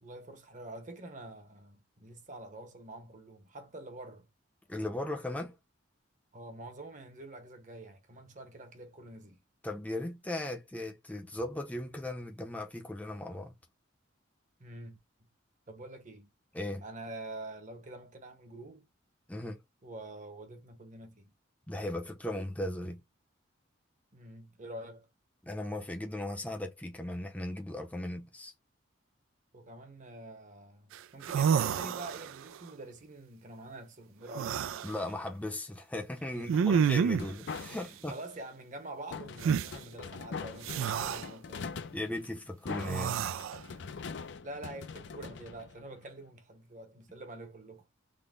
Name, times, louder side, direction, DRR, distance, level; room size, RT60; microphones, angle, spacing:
voice 1, 0.0-4.3 6.3-9.4 14.6-15.3 15.7-16.3 16.8-18.9 19.8-21.3 24.1-25.1 29.5-34.6 36.3-37.3 37.7-41.8 44.4-47.9, right 2 dB, 40° right, 0.9 m, -46 dB
voice 2, 4.7-5.5 9.6-13.5 16.5-16.8 19.3-19.6 21.7-23.0 25.4-28.5 34.8-38.2 41.9-43.2, left 1 dB, 5° left, 0.6 m, -37 dB
sound 1, 30.9-31.0 31.2-32.5 34.3-34.9 36.5-37.3 39.4-39.7 40.6-41.2 42.8-43.6, right 7 dB, 80° right, 0.3 m, -29 dB
sound 2, 36.5-38.1 39.1-46.2, left 5 dB, 60° left, 0.4 m, -43 dB
3.8 x 2.1 x 3.5 m
head